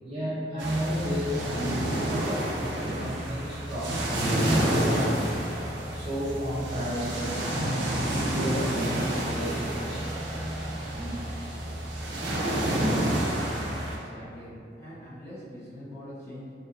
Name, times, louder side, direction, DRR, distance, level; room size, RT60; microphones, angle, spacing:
voice 1, 0.0-5.3 5.9-10.1 10.9-11.2, equal, 30° right, -9 dB, 0.8 m, -32 dB
sound 1, 0.6-14.0, right 1 dB, 90° right, 0.5 m, -29 dB
voice 2, 13.8-16.5, equal, 15° left, -11 dB, 0.6 m, -43 dB
2.7 x 2.3 x 2.4 m, 2.3 s
head